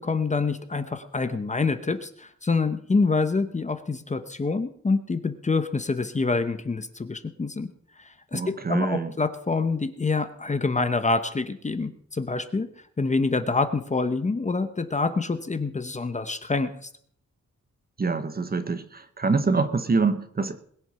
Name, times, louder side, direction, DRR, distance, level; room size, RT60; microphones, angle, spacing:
voice 1, 0.0-7.7 8.0-12.7 13.0-16.9, left 3 dB, 25° left, 10 dB, 0.8 m, -26 dB
voice 2, 8.3-9.1 18.0-20.6, right 4 dB, 30° right, 11 dB, 0.9 m, -25 dB
21.0 x 7.8 x 5.7 m, 0.64 s
wide cardioid pair, 175°, 30 cm